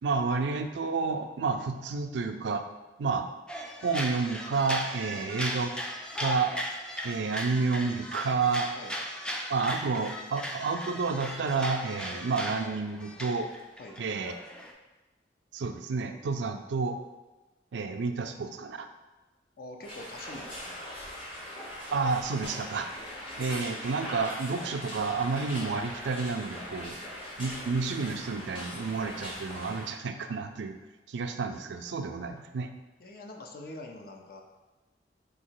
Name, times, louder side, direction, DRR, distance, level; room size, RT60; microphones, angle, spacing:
voice 1, 0.0-2.7 3.0-3.3 3.8-5.7 6.2-6.5 7.0-8.7 9.5-13.5 14.0-14.3 15.5-17.0 17.7-18.9 21.9-22.9 23.4-27.0 27.4-30.8 31.1-32.7, right 4 dB, 85° right, 7 dB, 0.4 m, -30 dB
sound 1, 3.5-14.7, equal, 5° left, 0.3 m, -37 dB
voice 2, 19.6-20.8 33.0-34.4, left 2 dB, 55° left, 2 dB, 0.5 m, -44 dB
sound 2, 19.8-29.9, equal, 30° left, 1.1 m, -40 dB
3.9 x 2.8 x 4.5 m, 1.1 s
head